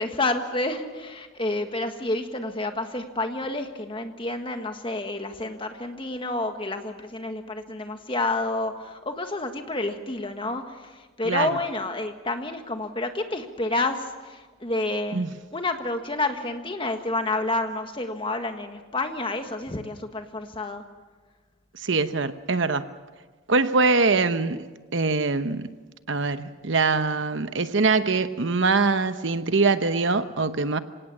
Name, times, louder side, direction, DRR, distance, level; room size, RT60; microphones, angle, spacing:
voice 1, 0.0-10.9 11.2-15.2 15.5-20.8, left 2 dB, 25° left, 6 dB, 1.6 m, -29 dB
voice 2, 11.2-11.6 15.1-15.3 21.7-22.9 23.5-24.6 24.9-25.7 26.1-30.8, right 4 dB, 60° right, 11 dB, 0.9 m, -23 dB
26.0 x 18.0 x 7.4 m, 1.3 s
head